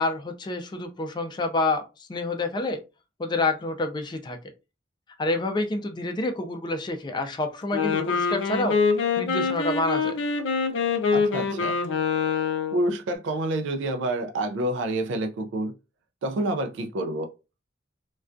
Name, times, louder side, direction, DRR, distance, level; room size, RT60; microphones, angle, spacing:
voice 1, 0.0-2.8 3.2-4.4 5.2-8.8 9.2-10.2, left 2 dB, 25° left, 0.3 m, -28 dB
Wind instrument woodwind instrument, 7.6-12.9, left 5 dB, 80° left, 0.5 m, -25 dB
voice 2, 11.1-11.8 12.7-15.7 16.2-17.3, right 1 dB, 80° right, 0.3 m, -28 dB
2.2 x 2.2 x 2.5 m
head